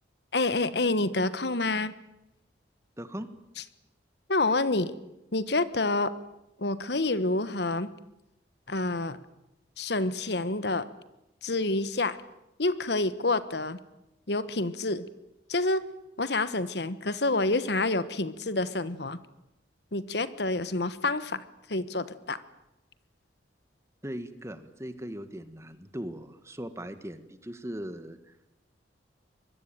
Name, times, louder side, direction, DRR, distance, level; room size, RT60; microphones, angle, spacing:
voice 1, 0.3-1.9 4.3-4.9 5.3-6.1 6.6-7.9 8.7-9.2 9.8-10.9 11.4-12.2 12.6-13.8 14.3-15.1 15.5-15.8 16.2-19.2 19.9-21.4 21.7-22.4, left 2 dB, 65° left, 14 dB, 1.4 m, -28 dB
voice 2, 3.0-3.3 24.0-28.3, equal, 15° right, 11 dB, 1.6 m, -39 dB
24.5 x 22.0 x 9.1 m, 0.91 s
head